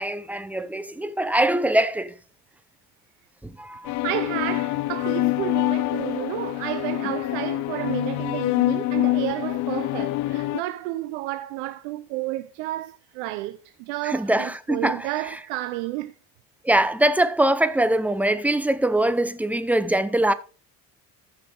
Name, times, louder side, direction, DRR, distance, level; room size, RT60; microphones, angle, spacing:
voice 1, 0.0-2.2 3.4-4.0 14.0-15.4 16.6-20.3, right 1 dB, 5° right, 0.8 m, -23 dB
sound 1, 3.9-10.6, left 18 dB, 55° left, 0.5 m, -25 dB
voice 2, 4.0-16.1, right 16 dB, 85° right, 0.8 m, -31 dB
14.5 x 5.8 x 3.9 m
supercardioid pair, 100°, 35 cm